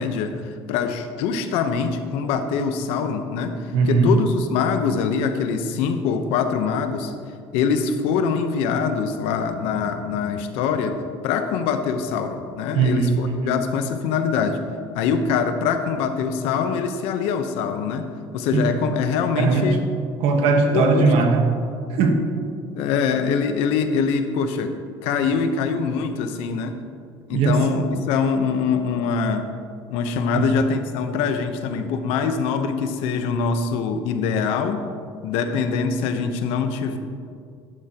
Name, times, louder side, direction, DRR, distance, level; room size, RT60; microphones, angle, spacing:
voice 1, 0.0-7.1 7.5-11.0 11.2-14.6 14.9-19.8 20.5-21.2 22.7-24.7 25.0-26.8 27.3-29.5 29.9-34.8 35.2-37.0, left 6 dB, 90° left, 7 dB, 1.0 m, -24 dB
voice 2, 3.7-4.2 12.7-13.1 13.4-13.6 18.5-18.7 19.3-19.9 20.2-21.6 21.9-22.3 27.3-27.7 30.3-30.5, right 3 dB, 80° right, 5 dB, 1.3 m, -19 dB
12.5 x 11.5 x 3.0 m, 2.3 s
cardioid pair, 140°, 10 cm